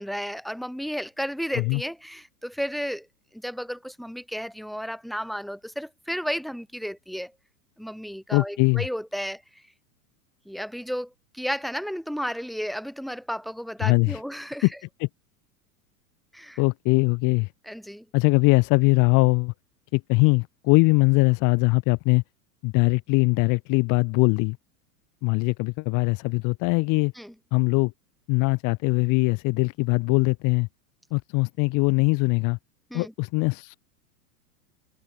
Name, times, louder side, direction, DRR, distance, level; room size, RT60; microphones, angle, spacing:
voice 1, 0.0-3.1 3.3-7.3 7.8-9.6 10.5-14.7 16.3-16.6 17.7-18.1 27.2-27.3 32.9-33.1, equal, ahead, 3.9 m, -33 dB
voice 2, 8.3-8.8 13.8-14.2 15.0-15.1 16.6-17.5 18.1-19.5 19.9-22.2 22.6-24.6 25.2-27.1 27.5-27.9 28.3-30.7 31.1-32.6 32.9-33.7, left 28 dB, 45° left, 1.3 m, -21 dB
hypercardioid pair, 100°, 45 cm